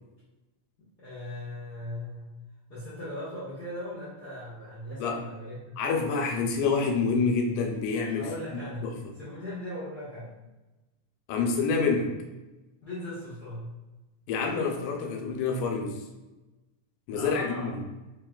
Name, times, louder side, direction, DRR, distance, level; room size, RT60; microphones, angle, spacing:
voice 1, 1.0-2.3 2.7-5.8 8.2-8.9 9.2-10.3 12.8-13.7 17.1-17.7, left 1 dB, 65° left, -12 dB, 1.0 m, -38 dB
voice 2, 5.8-8.3 8.8-9.0 11.3-12.1 14.3-16.0 17.1-17.8, left 4 dB, 90° left, 2 dB, 2.2 m, -27 dB
4.8 x 3.1 x 2.3 m, 1.1 s
omnidirectional pair, 3.5 m